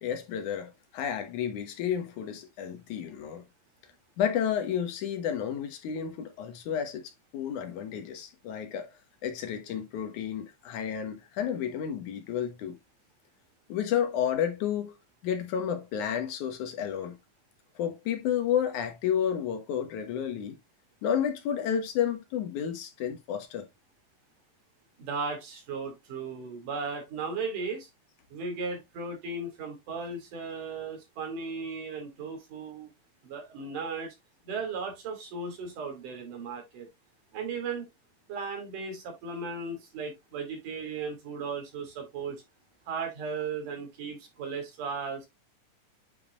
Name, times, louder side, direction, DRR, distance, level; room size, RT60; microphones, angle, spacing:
voice 1, 0.0-3.4 4.2-8.9 9.2-12.8 13.7-14.9 15.2-17.2 17.8-20.6 21.0-23.7, left 9 dB, 75° left, 2.6 m, -31 dB
voice 2, 25.0-27.9 28.3-32.9 33.2-34.2 34.4-36.9 37.3-37.9 38.3-42.4 42.9-45.3, right 4 dB, 85° right, 4.1 m, -36 dB
9.2 x 5.3 x 2.4 m
omnidirectional pair, 3.6 m